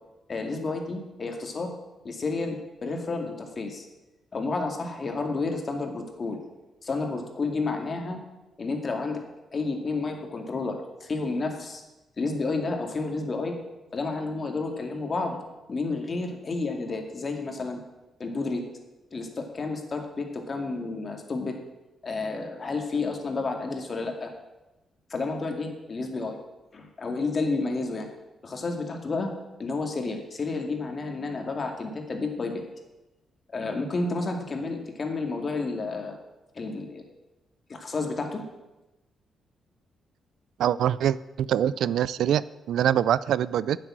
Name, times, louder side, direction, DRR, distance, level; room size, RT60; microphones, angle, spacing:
voice 1, 0.3-1.7 2.0-3.9 4.3-6.4 6.8-8.2 8.6-9.2 9.5-11.8 12.2-13.5 13.9-15.4 15.7-17.8 18.2-18.7 19.1-21.6 22.0-24.3 25.1-26.4 26.7-28.1 28.4-32.6 33.5-36.2 36.5-37.0 37.7-38.4, left 3 dB, 45° left, 3 dB, 2.3 m, -31 dB
voice 2, 40.6-43.8, right 10 dB, 80° right, 18 dB, 0.3 m, -24 dB
10.0 x 7.5 x 7.4 m, 1.0 s
cardioid pair, 70°, 0 cm